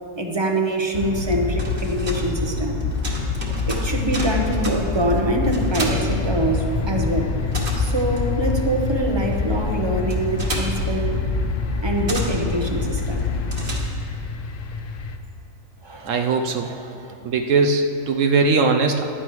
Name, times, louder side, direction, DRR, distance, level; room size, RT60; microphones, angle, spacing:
voice 1, 0.2-2.8 3.7-7.3 7.8-11.2 11.8-13.2 15.8-17.2, right 1 dB, 25° right, 2 dB, 0.9 m, -25 dB
sound 1, 0.9-13.8, left 3 dB, 45° left, 0.6 m, -26 dB
sound 2, 1.3-6.9 7.2-14.3, right 1 dB, 40° right, 1.6 m, -34 dB
sound 3, 5.4-15.2, left 6 dB, 75° left, 1.0 m, -32 dB
voice 2, 16.0-16.7 17.2-19.0, right 4 dB, 75° right, 4 dB, 1.0 m, -19 dB
15.0 x 11.0 x 3.1 m, 2.5 s
omnidirectional pair, 1.4 m